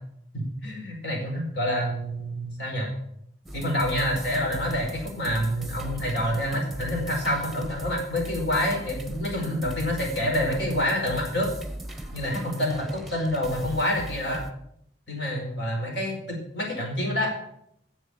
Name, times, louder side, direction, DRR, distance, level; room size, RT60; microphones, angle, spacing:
voice 1, 0.3-2.9 3.5-11.5 12.1-14.4 15.1-17.3, left 1 dB, 70° left, 0 dB, 4.9 m, -27 dB
sound 1, 3.5-14.5, right 1 dB, ahead, 1.0 m, -38 dB
10.0 x 7.3 x 8.7 m, 0.73 s
head